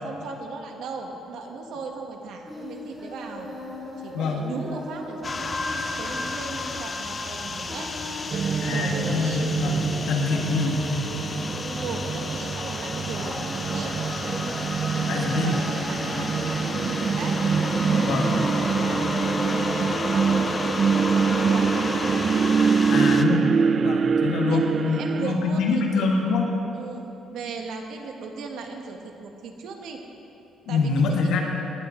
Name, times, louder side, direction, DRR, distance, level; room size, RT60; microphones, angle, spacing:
voice 1, 0.0-3.5 4.0-7.9 8.6-9.5 11.2-11.5 11.8-14.0 14.9-17.4 18.8-19.1 19.4-20.8 21.1-21.7 22.6-22.8 24.5-26.1 26.7-30.0 30.7-31.4, right 4 dB, 75° right, 3 dB, 1.4 m, -37 dB
Singing, 2.4-19.1, left 1 dB, 5° right, 2.9 m, -39 dB
sound 1, 5.2-23.2, left 3 dB, 25° left, 0.6 m, -32 dB
sound 2, 8.3-25.4, right 6 dB, 35° right, 0.3 m, -25 dB
voice 2, 8.6-11.1 15.1-15.5 18.0-18.3 22.9-23.5 23.8-26.5 30.7-31.4, left 4 dB, 85° left, 0 dB, 1.9 m, -25 dB
18.0 x 10.5 x 3.8 m, 2.8 s
cardioid pair, 150°, 0 cm